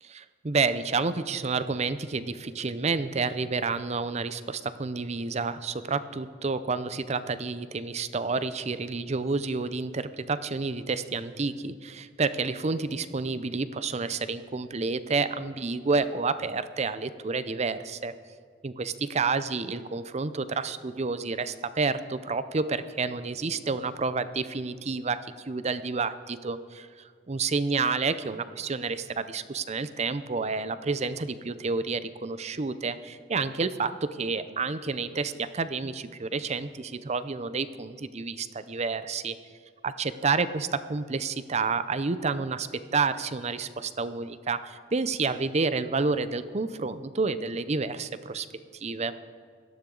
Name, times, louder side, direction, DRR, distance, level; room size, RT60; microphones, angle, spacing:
voice 1, 0.0-18.1 18.6-25.2 25.5-26.9 27.3-39.4 39.8-42.7 42.9-48.5 48.7-49.1, right 4 dB, 35° right, 13 dB, 0.6 m, -29 dB
17.5 x 13.0 x 3.9 m, 2.1 s
head